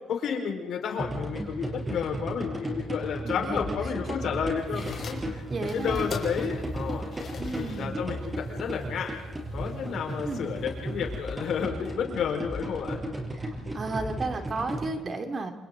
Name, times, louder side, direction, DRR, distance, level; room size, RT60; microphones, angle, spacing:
voice 1, 0.1-7.0 7.5-9.2 9.5-13.0, left 7 dB, 70° left, 2 dB, 4.9 m, -31 dB
sound 1, 1.0-14.8, right 1 dB, 20° right, 6.4 m, -34 dB
voice 2, 3.2-3.9 4.8-4.9 5.5-6.1 7.4-7.9 10.2-10.5 13.3-15.5, right 3 dB, 40° right, 5 dB, 2.8 m, -34 dB
sound 2, 4.6-11.4, left 5 dB, 50° left, 5.2 m, -44 dB
28.5 x 27.5 x 4.0 m, 1.0 s
cardioid pair, 90°, 0 cm